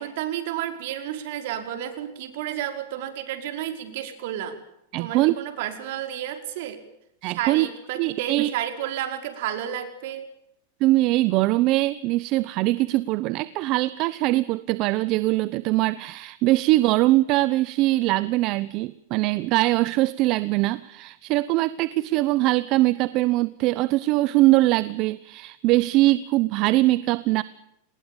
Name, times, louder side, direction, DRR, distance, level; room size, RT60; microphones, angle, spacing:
voice 1, 0.0-4.6 5.0-6.8 7.2-10.3, right 11 dB, 60° right, 8 dB, 5.4 m, -31 dB
voice 2, 4.9-5.4 7.2-7.7 8.0-8.5 10.8-27.4, right 18 dB, 40° right, 17 dB, 0.9 m, -22 dB
29.5 x 20.5 x 7.2 m, 0.78 s
supercardioid pair, 150°, 0 cm